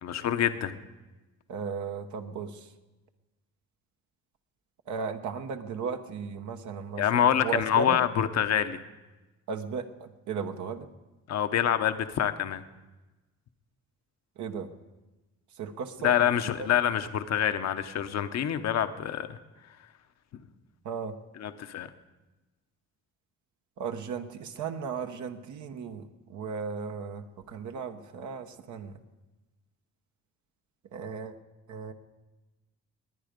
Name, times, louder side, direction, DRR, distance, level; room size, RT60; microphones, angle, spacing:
voice 1, 0.0-0.8 7.0-8.8 11.3-12.6 16.0-19.4 21.4-21.9, left 10 dB, 60° left, 9 dB, 0.9 m, -26 dB
voice 2, 1.5-2.6 4.9-8.0 9.5-10.9 14.4-14.7 15.6-16.1 16.4-16.5 20.8-21.1 23.8-28.9 30.9-31.3 31.7-31.9, right 5 dB, 75° right, 6 dB, 1.1 m, -35 dB
20.5 x 9.2 x 5.2 m, 1.1 s
cardioid pair, 90°, 30 cm